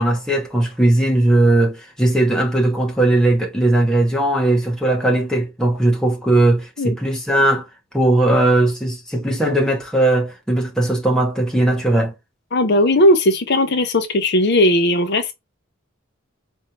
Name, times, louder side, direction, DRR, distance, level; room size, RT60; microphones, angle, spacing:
voice 1, 0.0-7.6 7.9-12.1, right 1 dB, 5° left, 1.0 m, -18 dB
voice 2, 12.5-15.3, left 1 dB, 50° left, 0.6 m, -17 dB
4.3 x 2.7 x 3.1 m
head